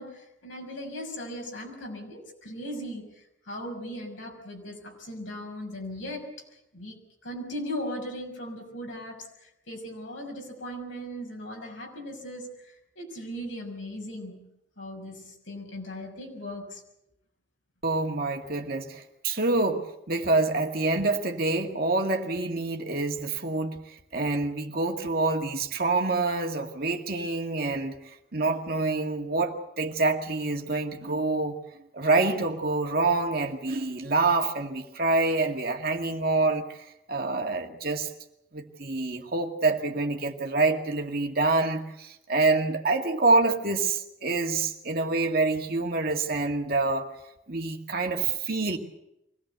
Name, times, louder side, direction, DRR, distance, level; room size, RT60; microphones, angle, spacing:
voice 1, 0.0-6.3 6.7-14.5 14.8-16.8, equal, 85° left, 1 dB, 6.4 m, -38 dB
voice 2, 17.8-27.9 28.3-31.6 31.9-38.1 38.5-47.1 47.5-48.8, right 3 dB, 50° right, 3 dB, 2.1 m, -26 dB
24.0 x 17.5 x 8.2 m, 0.83 s
head